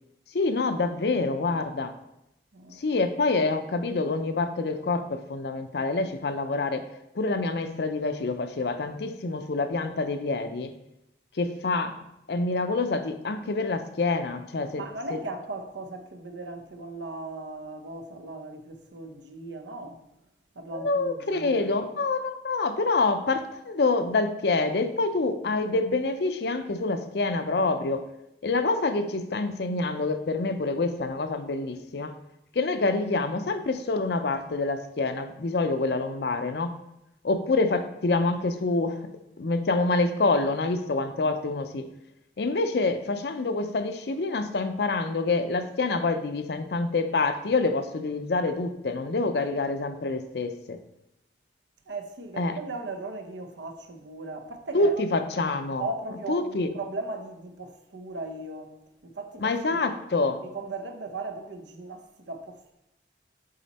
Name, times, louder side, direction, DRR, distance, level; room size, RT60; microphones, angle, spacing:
voice 1, 0.3-1.9 2.8-6.8 7.1-10.7 11.4-12.0 12.3-14.8 20.7-28.0 28.4-32.1 32.5-36.7 37.2-39.0 39.4-41.9 42.4-50.8 52.4-52.6 54.7-55.8 56.3-56.7 59.4-60.4, left 3 dB, 65° left, 0.5 m, -26 dB
voice 2, 2.5-2.8 14.8-20.0 20.5-21.7 51.9-55.0 55.8-58.7 59.0-59.8 60.5-62.7, right 2 dB, 85° right, 0.8 m, -37 dB
7.6 x 4.2 x 4.1 m
head